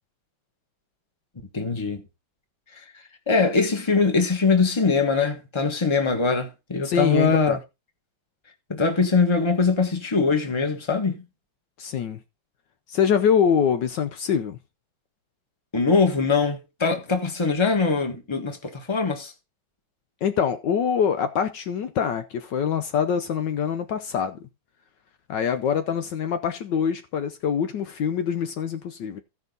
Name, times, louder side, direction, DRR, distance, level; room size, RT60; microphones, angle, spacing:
voice 1, 1.5-2.0 2.7-2.8 3.3-7.6 8.7-11.2 15.7-19.3, left 4 dB, 15° left, 1.4 m, -22 dB
voice 2, 6.8-7.6 11.8-12.2 12.9-14.6 20.2-24.5 25.3-29.2, left 7 dB, 70° left, 1.3 m, -24 dB
16.0 x 5.4 x 3.9 m
omnidirectional pair, 2.1 m